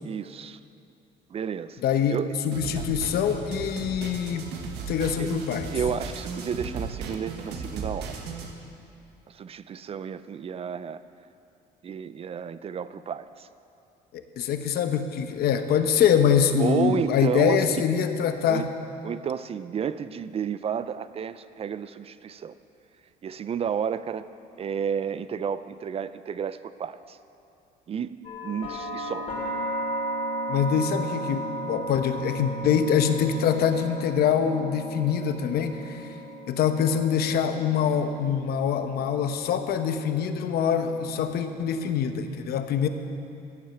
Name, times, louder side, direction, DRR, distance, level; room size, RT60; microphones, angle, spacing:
voice 1, 0.0-0.6 1.3-1.8 2.1-2.4 2.8-2.9 5.2-5.3 5.6-8.2 9.3-11.0 11.8-13.5 16.6-17.7 18.5-18.7 19.0-22.5 23.2-24.3 24.6-27.2 27.9-29.3, right 7 dB, 35° right, 14 dB, 0.4 m, -31 dB
voice 2, 1.8-4.6 4.9-5.7 14.1-18.7 30.5-36.1 36.5-42.9, left 7 dB, 65° left, 8 dB, 0.9 m, -24 dB
sound 1, 2.5-8.5, right 4 dB, 85° right, 1.4 m, -36 dB
sound 2, 28.2-42.1, right 1 dB, 40° left, 3.1 m, -36 dB
14.5 x 7.5 x 7.0 m, 2.6 s
cardioid pair, 110°, 17 cm